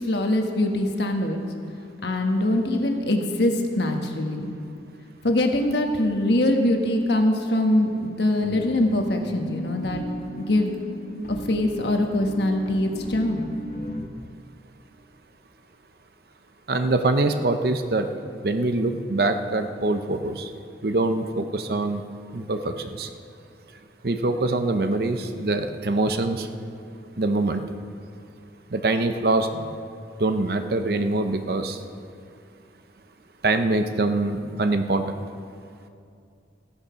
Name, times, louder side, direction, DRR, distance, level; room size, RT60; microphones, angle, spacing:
voice 1, 0.0-1.4 2.0-4.5 5.2-10.0 10.4-10.8 11.3-13.4, left 1 dB, 70° left, 3 dB, 1.3 m, -23 dB
sound 1, 8.4-14.1, left 1 dB, 45° left, 1.0 m, -37 dB
voice 2, 16.7-18.1 18.4-20.5 20.8-22.0 22.3-23.1 24.0-26.5 27.2-27.6 28.7-29.7 30.2-31.8 33.4-35.0, right 2 dB, 55° right, 7 dB, 0.7 m, -24 dB
15.0 x 9.8 x 5.8 m, 2.4 s
head